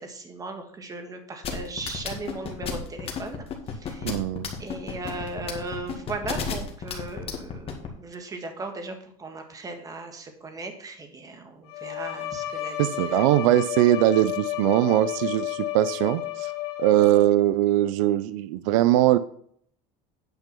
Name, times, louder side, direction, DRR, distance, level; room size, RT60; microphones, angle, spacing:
voice 1, 0.0-4.1 4.6-13.3, right 3 dB, 20° right, 5 dB, 1.7 m, -37 dB
sound 1, 1.4-7.9, left 6 dB, 35° left, 2.0 m, -31 dB
voice 2, 4.0-4.5 12.8-16.5 16.8-19.2, right 14 dB, 85° right, 14 dB, 0.5 m, -21 dB
Bowed string instrument, 11.7-17.5, left 14 dB, 70° left, 2.4 m, -32 dB
9.3 x 5.3 x 5.8 m, 0.64 s
supercardioid pair, 125°, 16 cm